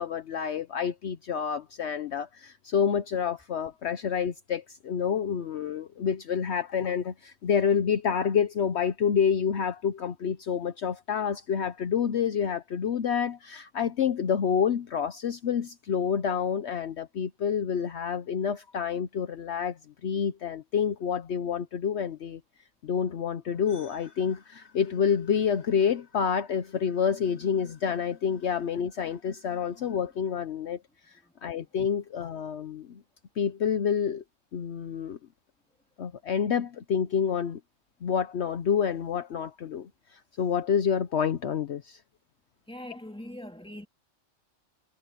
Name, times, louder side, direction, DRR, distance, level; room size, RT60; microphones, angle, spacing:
voice 1, 0.0-22.4 22.8-30.8 31.1-33.0 33.4-34.2 34.5-35.2 36.0-37.6 38.0-42.0, left 7 dB, 65° left, 1.0 m, -28 dB
voice 2, 42.7-43.9, left 1 dB, 5° left, 2.3 m, -42 dB
omnidirectional pair, 1.3 m